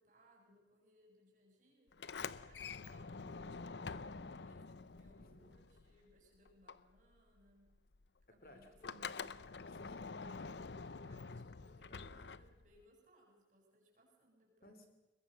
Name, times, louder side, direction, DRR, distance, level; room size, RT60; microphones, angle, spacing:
voice 1, 0.0-1.9 2.4-7.7 8.3-9.2 10.1-14.8, equal, 45° right, 0 dB, 7.5 m, -69 dB
Sliding door, 1.9-6.2 6.4-12.8, left 4 dB, 75° left, 0.8 m, -47 dB
voice 2, 8.4-10.1 11.9-12.1 14.6-14.9, equal, 55° left, 7 dB, 3.1 m, -60 dB
22.5 x 21.0 x 6.7 m, 1.1 s
head